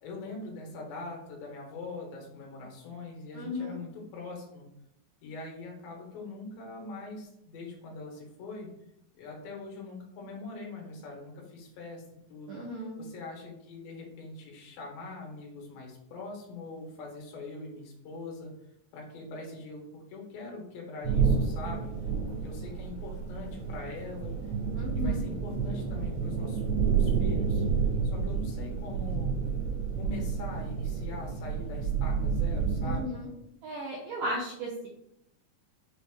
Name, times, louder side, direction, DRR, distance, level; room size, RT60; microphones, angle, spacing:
voice 1, 0.0-4.7 5.2-8.7 9.1-12.0 12.3-12.6 13.0-18.5 18.9-21.9 22.3-24.5 24.9-27.6 28.0-29.3 29.9-33.2, left 3 dB, 75° left, -1 dB, 2.7 m, -42 dB
voice 2, 3.3-3.8 12.5-13.0 24.7-25.3 32.8-33.3 33.6-34.9, left 1 dB, 90° right, -4 dB, 1.7 m, -35 dB
sound 1, 21.0-33.0, right 6 dB, 65° right, 2.2 m, -30 dB
6.0 x 2.0 x 3.5 m, 0.77 s
omnidirectional pair, 4.2 m